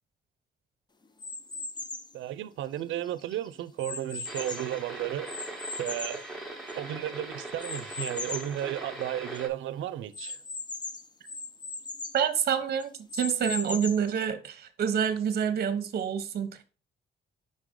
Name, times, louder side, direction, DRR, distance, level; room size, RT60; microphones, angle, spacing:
sound 1, 1.2-2.1 2.8-4.8 5.3-6.9 7.6-8.6 9.0-9.1 9.3-9.4 10.1-12.2 12.8-14.1, left 3 dB, 20° left, 0.5 m, -38 dB
voice 1, 2.1-6.2 6.8-10.4, right 12 dB, 90° right, 0.5 m, -34 dB
sound 2, 4.2-9.5, right 2 dB, ahead, 1.3 m, -40 dB
voice 2, 12.1-16.6, right 8 dB, 55° right, 0.9 m, -28 dB
5.5 x 4.9 x 3.7 m
cardioid pair, 120°, 20 cm